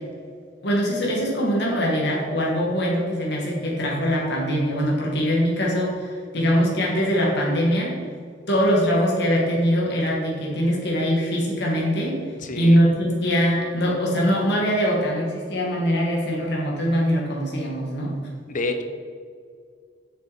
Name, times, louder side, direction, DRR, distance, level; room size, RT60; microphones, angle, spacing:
voice 1, 0.6-8.0 8.5-12.2 12.6-18.2, equal, 65° left, -3 dB, 2.2 m, -22 dB
voice 2, 12.4-12.8 18.5-18.8, left 2 dB, 45° left, 6 dB, 0.8 m, -29 dB
7.8 x 6.8 x 4.4 m, 2.1 s
head